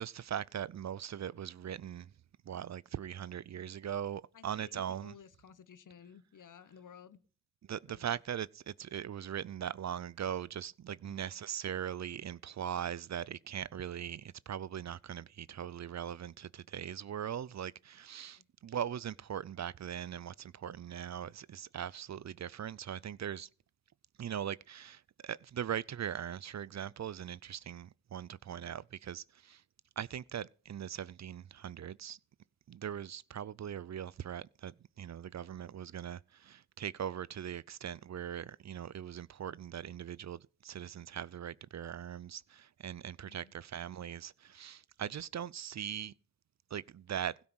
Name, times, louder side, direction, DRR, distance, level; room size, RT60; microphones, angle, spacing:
voice 1, 0.0-2.1 2.5-5.1 7.7-23.5 24.2-29.6 30.0-32.2 32.7-46.1 46.7-47.3, right 9 dB, 55° right, 0.5 m, -40 dB
voice 2, 4.3-7.2 7.9-8.2 11.0-11.3 18.3-18.4 43.3-43.5, left 7 dB, 65° left, 1.0 m, -55 dB
16.0 x 6.0 x 6.3 m
cardioid pair, 65°, 34 cm